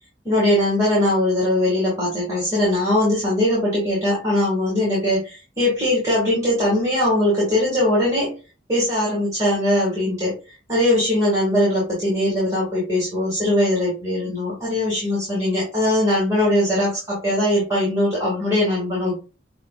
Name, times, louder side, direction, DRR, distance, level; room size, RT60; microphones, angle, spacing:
voice 1, 0.2-8.3 8.7-10.3 10.7-19.2, left 1 dB, 20° right, -6 dB, 1.9 m, -20 dB
6.5 x 2.5 x 2.4 m, 0.32 s
head